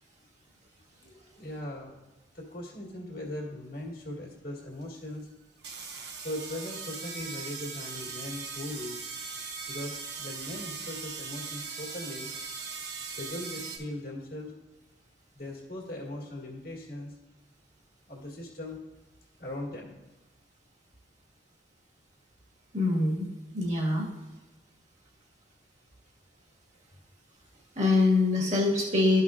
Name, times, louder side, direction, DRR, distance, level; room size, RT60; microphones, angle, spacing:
voice 1, 1.0-2.0 2.3-5.3 6.2-9.0 9.7-12.3 13.1-14.5 15.4-17.1 18.1-18.8 19.4-20.0, left 1 dB, 55° left, -2 dB, 1.9 m, -39 dB
sound 1, 4.8-4.9 5.6-13.8, right 5 dB, 75° right, 1.1 m, -39 dB
voice 2, 22.7-23.3 23.5-24.1 27.8-29.2, left 2 dB, 40° right, -3 dB, 1.7 m, -24 dB
13.0 x 5.6 x 2.5 m, 1.1 s
head